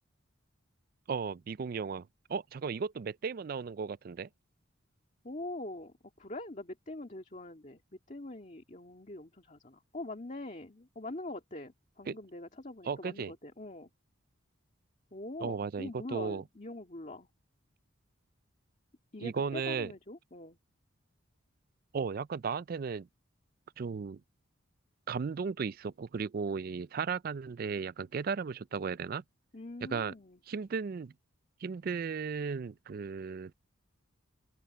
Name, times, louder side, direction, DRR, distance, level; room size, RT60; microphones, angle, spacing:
voice 1, 1.1-4.3 12.1-12.2 12.9-13.3 15.4-16.4 19.2-19.9 21.9-23.1 23.8-24.2 25.1-29.2 29.8-30.1 30.5-31.1 31.6-33.5, right 5 dB, 45° right, 0.3 m, -35 dB
voice 2, 5.2-7.8 8.1-13.9 15.1-17.3 19.1-20.6 29.5-30.4, left 2 dB, 35° left, 2.0 m, -43 dB
open air
head